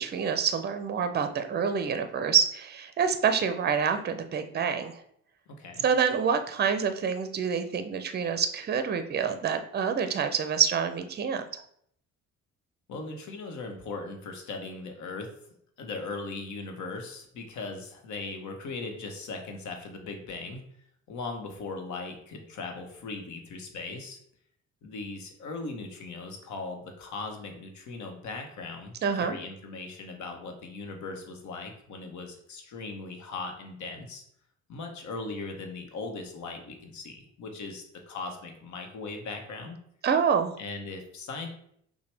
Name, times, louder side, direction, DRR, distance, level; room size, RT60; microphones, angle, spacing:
voice 1, 0.0-5.0 5.8-11.6 29.0-29.4 40.0-40.5, right 7 dB, 35° right, 9 dB, 0.5 m, -27 dB
voice 2, 5.5-5.9 12.9-15.3 15.8-20.6 21.1-24.2 24.8-34.2 34.7-39.8 40.6-41.5, left 3 dB, 75° left, 4 dB, 0.9 m, -39 dB
5.7 x 2.2 x 3.3 m, 0.68 s
cardioid pair, 90°, 30 cm